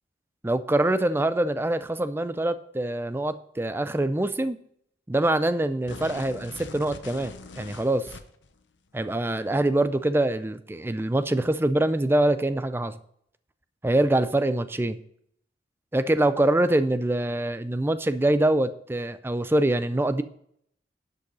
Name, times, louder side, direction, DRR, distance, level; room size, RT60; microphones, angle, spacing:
voice 1, 0.4-4.6 5.1-8.1 8.9-13.0 13.8-15.0 15.9-20.2, right 1 dB, 10° right, 12 dB, 0.4 m, -24 dB
sound 1, 5.9-8.5, left 3 dB, 80° left, 0.8 m, -42 dB
10.5 x 5.5 x 5.4 m, 0.69 s
head